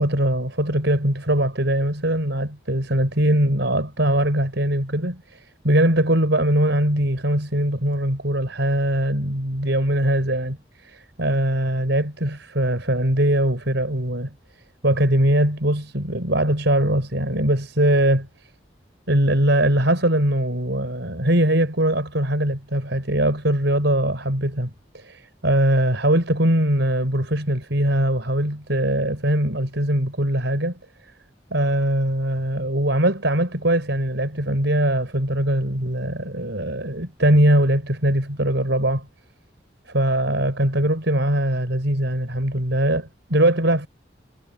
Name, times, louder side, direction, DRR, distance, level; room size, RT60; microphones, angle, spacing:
voice 1, 0.0-14.3 14.8-18.3 19.1-30.8 31.5-39.1 39.9-43.9, right 1 dB, 75° right, 4.3 m, -21 dB
head